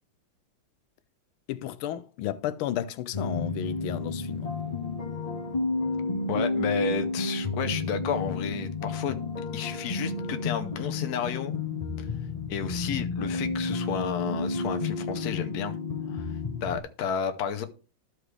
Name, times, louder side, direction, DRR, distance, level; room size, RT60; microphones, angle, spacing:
voice 1, 1.5-4.5 6.4-6.5, left 12 dB, 85° left, 1.4 m, -33 dB
sound 1, 3.1-16.8, left 3 dB, 45° left, 0.5 m, -31 dB
voice 2, 6.3-9.2 9.5-11.5 12.0-12.1 12.5-15.8 16.1-17.6, left 7 dB, 60° left, 1.1 m, -32 dB
13.0 x 4.8 x 3.3 m
omnidirectional pair, 2.3 m